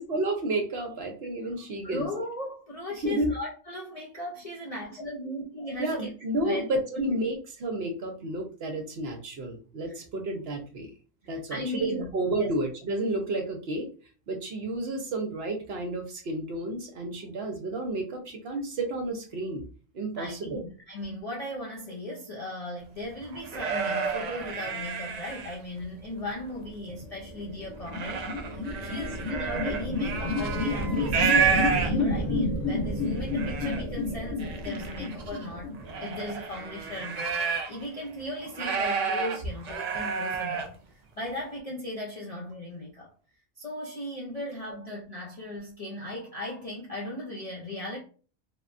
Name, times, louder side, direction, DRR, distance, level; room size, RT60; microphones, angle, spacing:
voice 1, 0.0-2.1 3.0-3.3 5.8-10.9 11.2-13.9 14.3-19.6 19.9-20.6 44.4-44.5, right 2 dB, 60° right, 0.8 m, -31 dB
voice 2, 1.8-6.1 6.4-6.6 6.9-7.0 9.9-10.0 11.5-12.1 12.4-12.5 20.2-20.3 20.6-28.3 28.8-35.7 36.0-37.4 37.7-40.8 41.2-43.1 43.6-48.0, left 1 dB, 50° left, 0.4 m, -37 dB
sound 1, 23.0-25.8 26.3-27.0 27.4-32.3 32.8-32.9 33.1-33.8 34.4-37.8 38.2-40.7, right 6 dB, 85° right, 0.3 m, -30 dB
sound 2, 26.8-36.5, left 2 dB, 85° left, 1.5 m, -31 dB
3.5 x 2.1 x 2.5 m
omnidirectional pair, 1.3 m